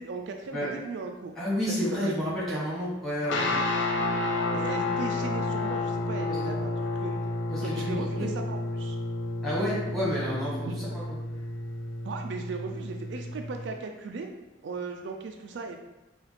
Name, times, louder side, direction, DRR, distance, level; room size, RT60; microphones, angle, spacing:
voice 1, 0.0-1.3 1.7-2.6 4.5-7.2 7.6-9.0 10.6-10.8 12.0-14.3 14.6-15.8, right 4 dB, 70° right, 4 dB, 0.3 m, -37 dB
voice 2, 1.4-3.5 6.2-6.4 7.5-8.3 9.4-10.7 10.9-11.0, equal, ahead, -7 dB, 1.4 m, -30 dB
sound 1, 3.2-13.7, left 2 dB, 80° left, 0.5 m, -31 dB
4.8 x 2.4 x 3.1 m, 1.0 s
head